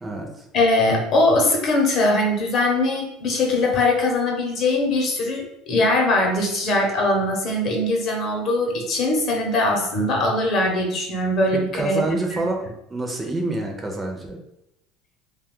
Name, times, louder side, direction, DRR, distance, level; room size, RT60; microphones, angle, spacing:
voice 1, 0.0-0.5 11.5-14.4, right 2 dB, 15° right, 1 dB, 0.5 m, -27 dB
voice 2, 0.5-12.5, left 2 dB, 45° left, 1 dB, 0.7 m, -21 dB
2.5 x 2.2 x 3.6 m, 0.81 s
supercardioid pair, 125°, 0 cm